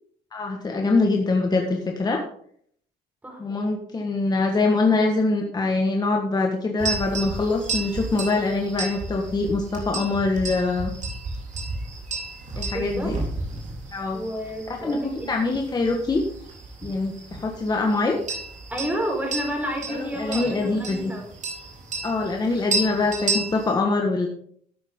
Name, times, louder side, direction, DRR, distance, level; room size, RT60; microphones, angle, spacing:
voice 1, 0.3-2.2 3.4-10.9 12.6-13.1 13.9-14.2 14.8-16.2 16.8-18.2 19.9-21.1 22.0-24.3, left 3 dB, 25° left, 2 dB, 1.5 m, -24 dB
sound 1, 6.8-23.7, right 3 dB, 45° right, 3.9 m, -33 dB
voice 2, 12.7-13.1 14.1-15.3 18.7-21.3, equal, 10° right, 1 dB, 4.7 m, -30 dB
12.5 x 9.1 x 3.8 m, 0.62 s
cardioid pair, 110°, 17 cm